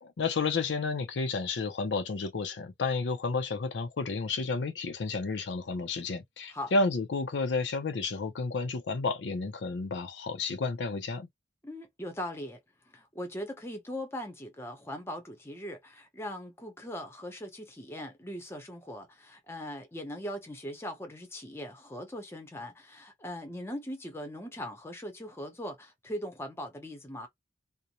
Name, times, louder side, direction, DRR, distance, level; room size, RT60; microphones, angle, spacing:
voice 1, 0.0-11.3, left 3 dB, 75° left, 0.5 m, -31 dB
voice 2, 11.6-12.6 12.9-27.3, equal, 15° left, 0.7 m, -40 dB
2.5 x 2.1 x 2.8 m
head